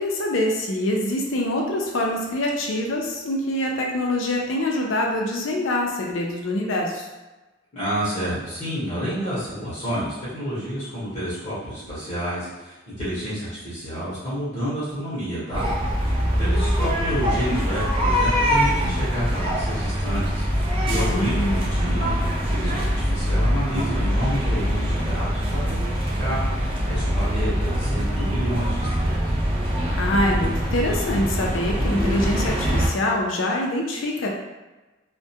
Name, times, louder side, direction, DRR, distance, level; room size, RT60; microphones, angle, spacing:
voice 1, 0.0-7.1 20.9-21.7 29.9-34.3, left 1 dB, 80° left, 0 dB, 0.5 m, -25 dB
voice 2, 7.7-15.6 16.4-20.4 20.8-29.2, equal, 35° left, -10 dB, 0.8 m, -29 dB
sound 1, 15.5-32.9, equal, 25° right, 0.4 m, -23 dB
2.3 x 2.1 x 2.7 m, 1.1 s
head